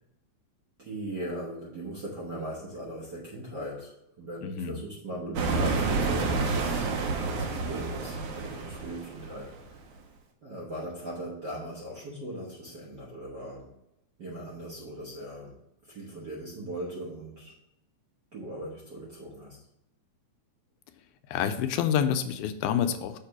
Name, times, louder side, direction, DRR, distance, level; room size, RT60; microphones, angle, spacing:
voice 1, 0.8-9.5 10.4-13.7 14.2-17.6 18.3-19.6, right 1 dB, 60° right, -4 dB, 1.1 m, -39 dB
voice 2, 4.4-4.8 21.3-23.2, left 8 dB, 85° left, 9 dB, 2.0 m, -28 dB
sound 1, 5.4-9.9, right 4 dB, 75° right, 1.3 m, -29 dB
6.5 x 3.3 x 5.8 m, 0.82 s
omnidirectional pair, 3.5 m